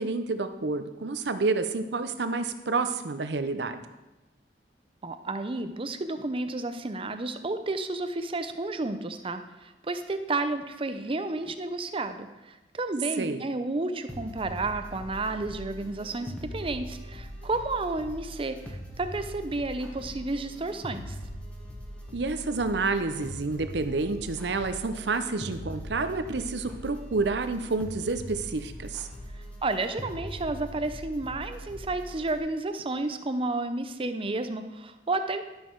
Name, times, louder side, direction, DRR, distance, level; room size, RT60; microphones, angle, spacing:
voice 1, 0.0-3.8 13.2-13.4 22.1-29.1, right 3 dB, 70° right, 9 dB, 0.7 m, -29 dB
voice 2, 5.0-21.2 29.6-35.4, right 2 dB, 30° right, 9 dB, 0.6 m, -31 dB
sound 1, 14.1-32.4, equal, 5° left, 1.4 m, -41 dB
11.5 x 6.3 x 4.6 m, 1.0 s
head